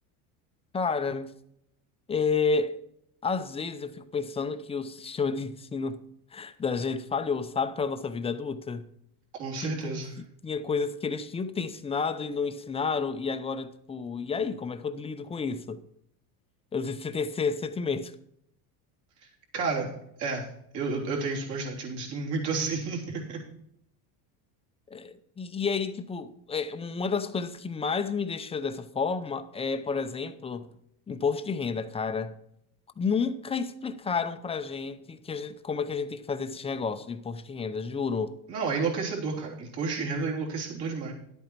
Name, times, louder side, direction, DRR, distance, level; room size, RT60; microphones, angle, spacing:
voice 1, 0.7-1.3 2.1-2.8 3.2-6.0 6.3-8.9 9.6-9.9 10.4-15.8 16.7-18.1 24.9-30.8 31.1-32.4 33.0-38.4, left 5 dB, 15° left, 0.5 m, -31 dB
voice 2, 9.3-10.1 19.5-19.9 20.2-20.5 20.7-23.4 38.5-41.1, right 4 dB, 60° right, 3.6 m, -31 dB
11.0 x 8.6 x 4.5 m
supercardioid pair, 125°, 44 cm